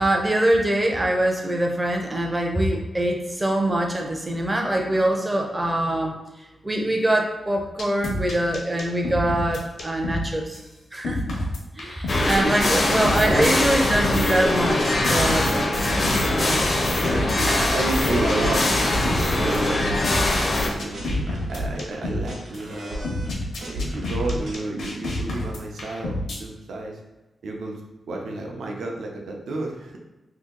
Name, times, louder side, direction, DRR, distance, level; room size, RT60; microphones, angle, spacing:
voice 1, 0.0-6.2 6.6-10.6 10.9-11.4 11.8-15.5 16.3-16.7 17.0-17.5, right 1 dB, 10° right, 2 dB, 0.4 m, -24 dB
sound 1, 7.8-10.2 10.5-10.6 11.0-12.4 13.0-14.4 14.8-15.6 16.0-16.2 17.0-20.4 20.8-22.2 22.5-22.6 23.0-26.4, left 1 dB, 75° left, 0.8 m, -29 dB
sound 2, 12.1-20.7, left 2 dB, 40° left, 0.5 m, -22 dB
sound 3, 12.1-18.6 18.9-24.5, equal, 65° right, 1.0 m, -33 dB
voice 2, 12.4-13.8 17.4-23.2 23.6-27.0 27.4-30.0, right 2 dB, 85° right, 0 dB, 0.5 m, -31 dB
2.8 x 2.6 x 3.7 m, 1.0 s
wide cardioid pair, 175°, 0 cm